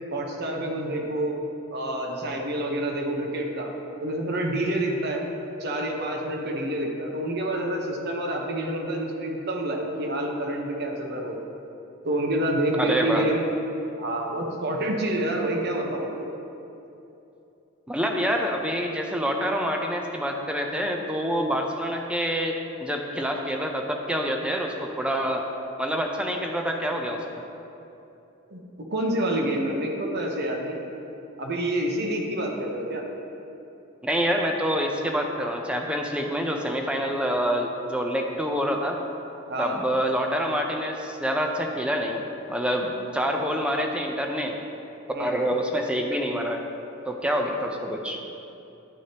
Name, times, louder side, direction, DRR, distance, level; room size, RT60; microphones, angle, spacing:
voice 1, 0.1-1.4 1.7-3.7 4.0-5.2 5.6-11.4 12.0-13.4 14.0-16.3 28.5-28.6 28.9-30.8 31.4-33.0 39.5-39.8 45.1-45.4, right 1 dB, 50° right, 1 dB, 0.9 m, -28 dB
voice 2, 12.8-13.3 17.9-25.4 25.8-27.2 34.0-39.0 39.6-42.2 42.5-44.6 45.2-46.6 47.1-48.2, equal, 5° right, 2 dB, 0.5 m, -26 dB
11.0 x 6.3 x 2.9 m, 2.9 s
head